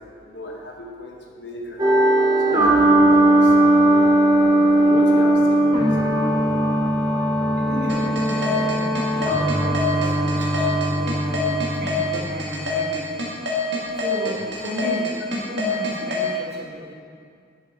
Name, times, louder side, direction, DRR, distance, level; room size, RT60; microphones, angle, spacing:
voice 1, 0.2-6.6, equal, 75° left, 0 dB, 1.3 m, -34 dB
sound 1, 1.8-12.8, right 1 dB, 20° right, 0.8 m, -19 dB
voice 2, 7.6-13.2 14.0-16.9, equal, 60° right, -3 dB, 1.7 m, -33 dB
sound 2, 7.9-16.3, left 3 dB, 80° right, 1.8 m, -25 dB
8.5 x 7.9 x 3.7 m, 2.2 s
head